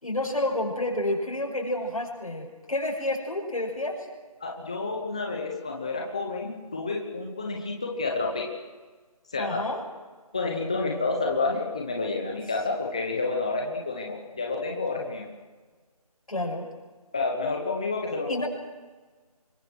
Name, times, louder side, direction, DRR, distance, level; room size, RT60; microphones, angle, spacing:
voice 1, 0.0-4.1 9.3-9.8 16.3-16.7 18.3-18.5, left 1 dB, 65° left, -1 dB, 6.5 m, -29 dB
voice 2, 4.4-8.5 9.3-9.6 10.3-15.3 17.1-18.4, left 3 dB, 10° left, 1 dB, 0.9 m, -29 dB
26.5 x 22.5 x 6.2 m, 1.4 s
figure-of-eight pair, 175°, 20 cm